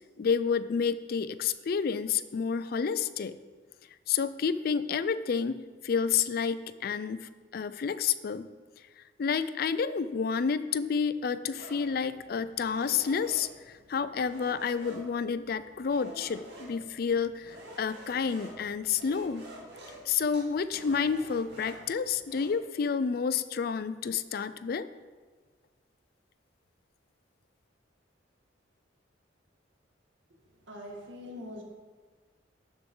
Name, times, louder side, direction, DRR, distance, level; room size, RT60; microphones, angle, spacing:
voice 1, 0.2-3.4 4.1-8.5 9.2-19.4 20.1-24.9, left 6 dB, 50° left, 14 dB, 0.4 m, -30 dB
sound 1, 11.5-22.5, right 1 dB, 60° right, 2.3 m, -49 dB
voice 2, 30.3-31.6, left 1 dB, 75° right, 0 dB, 2.0 m, -44 dB
12.0 x 6.9 x 3.8 m, 1.5 s
head